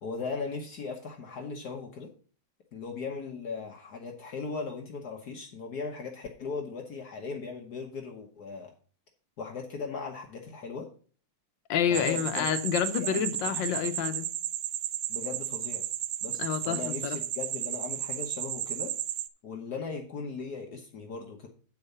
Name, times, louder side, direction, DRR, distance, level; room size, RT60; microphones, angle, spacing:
voice 1, 0.0-2.1 2.7-8.7 9.4-10.9 11.9-12.5 13.0-13.5 15.1-15.9 16.2-18.9 19.4-21.5, left 4 dB, 60° left, 1.6 m, -38 dB
voice 2, 11.7-14.3 16.4-17.2, left 8 dB, 75° left, 1.6 m, -28 dB
sound 1, 11.9-19.3, right 12 dB, 70° right, 0.9 m, -34 dB
8.6 x 4.8 x 6.6 m
omnidirectional pair, 2.0 m